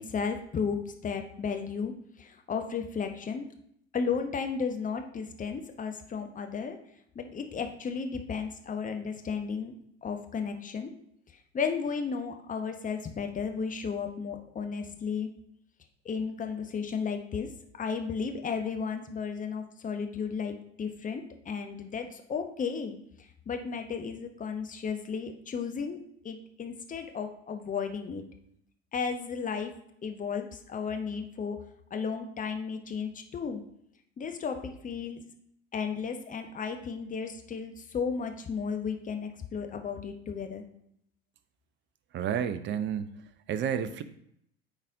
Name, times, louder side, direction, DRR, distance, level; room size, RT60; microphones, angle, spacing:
voice 1, 0.0-1.9 2.2-3.5 3.9-6.8 7.1-9.7 10.0-10.9 11.5-15.3 16.0-17.5 17.8-23.0 23.5-26.0 26.2-28.2 28.9-29.7 30.0-31.6 31.9-33.6 34.2-35.2 35.7-40.6, left 6 dB, 25° left, 5 dB, 0.8 m, -34 dB
voice 2, 42.1-43.2 43.5-44.0, right 8 dB, 35° right, 12 dB, 0.6 m, -30 dB
9.7 x 4.1 x 2.6 m, 0.72 s
figure-of-eight pair, 65°, 32 cm